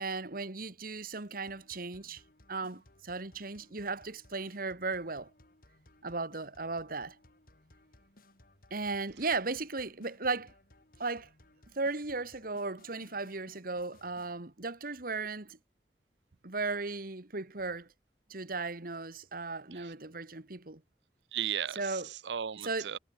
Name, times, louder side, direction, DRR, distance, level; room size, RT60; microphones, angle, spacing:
voice 1, 0.0-2.2 2.5-5.3 6.0-7.2 8.7-10.5 11.0-11.3 11.8-15.6 16.4-17.9 18.3-20.8 21.7-22.1 22.6-22.9, right 3 dB, 55° right, 1.9 m, -36 dB
sound 1, 1.5-14.4, left 1 dB, 55° left, 3.6 m, -62 dB
voice 2, 21.3-23.0, right 9 dB, 80° right, 0.6 m, -36 dB
head